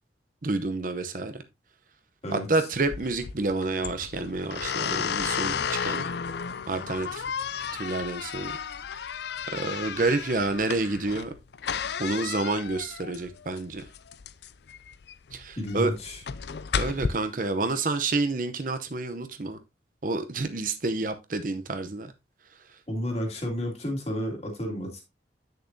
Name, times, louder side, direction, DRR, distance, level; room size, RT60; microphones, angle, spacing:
voice 1, 0.4-1.4 2.3-6.0 6.7-7.2 7.7-8.6 9.5-11.3 12.0-13.8 15.3-15.9 16.7-19.6 20.0-22.1, right 3 dB, 45° right, 0.7 m, -29 dB
voice 2, 2.2-2.7 15.6-16.2 22.9-25.0, equal, 35° left, 2.4 m, -32 dB
sound 1, 2.8-17.1, left 7 dB, 65° left, 0.4 m, -33 dB
8.4 x 6.6 x 2.7 m
head